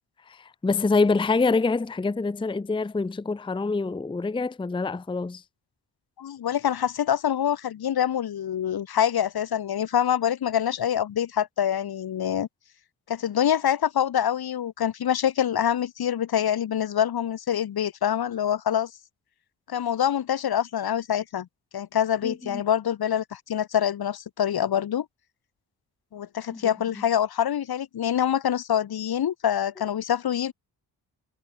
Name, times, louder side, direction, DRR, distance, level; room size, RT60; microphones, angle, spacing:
voice 1, 0.3-5.4 22.2-22.6 26.5-26.6, left 3 dB, 10° left, 0.6 m, -26 dB
voice 2, 6.2-12.5 13.1-18.9 19.7-21.5 21.7-25.1 26.1-30.5, left 9 dB, 60° left, 1.2 m, -25 dB
cardioid pair, 95°, 42 cm